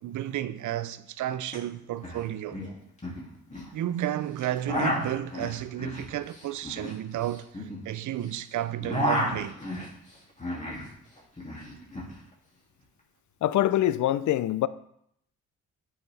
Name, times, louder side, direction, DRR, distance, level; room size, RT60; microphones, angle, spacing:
voice 1, 0.0-2.6 3.7-7.5 7.8-9.6, right 12 dB, 65° right, 0.5 m, -32 dB
sound 1, 1.5-1.6 1.8-2.2 2.5-3.7 4.4-8.3 8.6-10.9 11.2-12.1, equal, 20° left, 2.5 m, -32 dB
voice 2, 13.4-14.7, left 13 dB, 65° left, 0.5 m, -24 dB
8.3 x 5.8 x 3.4 m
cardioid pair, 65°, 33 cm